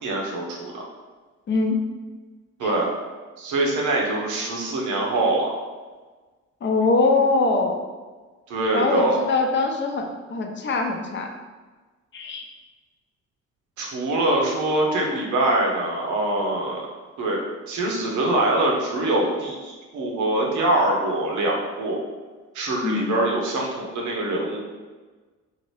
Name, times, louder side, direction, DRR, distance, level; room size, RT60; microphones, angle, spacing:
voice 1, 0.0-0.8 2.6-2.9 3.4-5.5 8.5-9.2 13.8-16.8 17.2-17.4 17.7-22.0 22.5-24.6, right 2 dB, 80° right, -1 dB, 0.8 m, -24 dB
voice 2, 1.5-1.8 2.6-2.7 6.6-7.8 8.7-11.3 12.1-12.4 22.8-23.1, left 3 dB, 40° left, 3 dB, 0.5 m, -22 dB
2.8 x 2.6 x 3.2 m, 1.3 s
cardioid pair, 90°, 30 cm